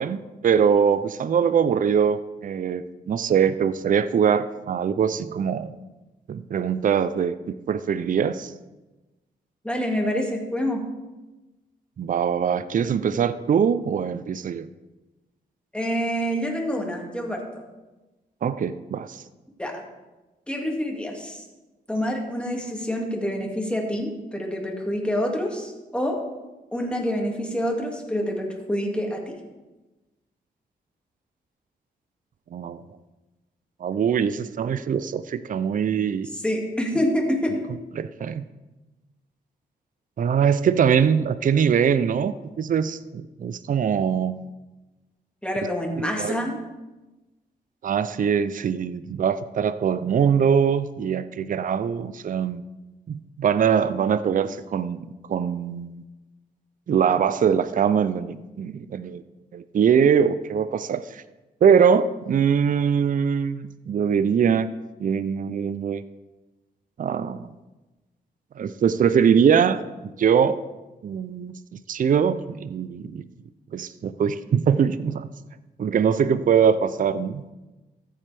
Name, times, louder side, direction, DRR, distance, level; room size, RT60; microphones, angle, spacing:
voice 1, 0.0-5.7 6.3-8.5 12.0-14.7 18.4-19.2 32.5-32.8 33.8-36.3 38.0-38.5 40.2-44.4 46.2-46.4 47.8-52.6 53.1-56.0 56.9-59.2 59.5-61.2 61.6-64.7 65.0-66.0 67.0-67.5 68.6-69.8 70.2-70.6 71.0-73.2 73.7-75.3 75.8-77.5, right 7 dB, 50° right, 14 dB, 0.5 m, -22 dB
voice 2, 9.6-10.8 15.7-17.6 19.6-19.8 20.5-21.4 21.9-26.2 26.7-29.4 36.3-37.7 45.4-46.6, equal, 5° left, 0 dB, 2.2 m, -27 dB
13.5 x 7.5 x 3.4 m, 1.1 s
cardioid pair, 70°, 17 cm